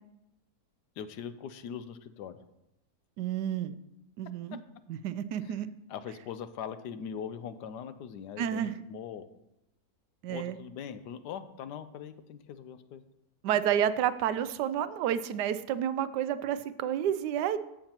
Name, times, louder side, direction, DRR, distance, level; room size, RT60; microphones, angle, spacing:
voice 1, 1.0-2.4 5.4-5.5 5.9-9.3 10.3-13.0, left 8 dB, 85° left, 11 dB, 1.2 m, -41 dB
voice 2, 3.2-3.8 4.2-4.6 4.9-5.7 8.4-8.7 10.2-10.6 13.4-17.6, right 10 dB, 90° right, 13 dB, 1.2 m, -30 dB
14.0 x 7.2 x 2.9 m, 0.87 s
omnidirectional pair, 1.7 m